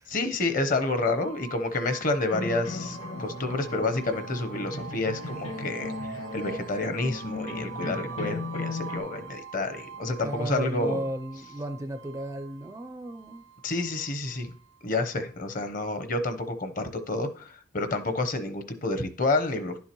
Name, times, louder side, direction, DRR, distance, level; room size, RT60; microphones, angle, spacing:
voice 1, 0.1-11.0 13.6-14.5 14.8-19.8, left 2 dB, 40° left, 0.8 m, -29 dB
sound 1, 0.8-15.8, right 6 dB, 85° right, 0.8 m, -44 dB
sound 2, 2.3-9.0, left 2 dB, 75° left, 1.7 m, -36 dB
voice 2, 10.2-13.4, right 1 dB, 15° right, 0.4 m, -34 dB
11.0 x 7.1 x 3.0 m
head